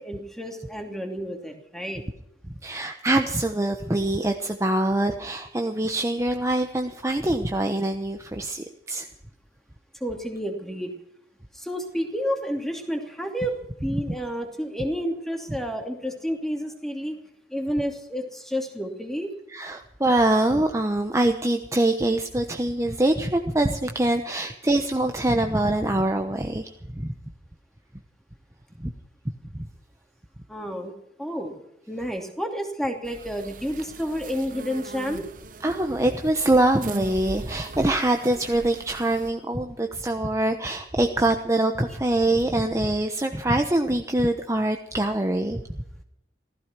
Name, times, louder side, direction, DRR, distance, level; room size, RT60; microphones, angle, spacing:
voice 1, 0.0-2.0 10.0-10.9 11.5-17.2 17.5-19.3 30.5-30.9 31.2-31.5 31.9-35.3, equal, ahead, 3 dB, 2.7 m, -30 dB
voice 2, 2.6-9.1 19.5-27.1 28.8-28.9 29.5-29.7 35.6-45.6, right 1 dB, 15° right, 5 dB, 1.0 m, -24 dB
sound 1, 33.0-39.3, right 2 dB, 50° right, 1.0 m, -40 dB
16.0 x 15.0 x 6.0 m, 0.77 s
head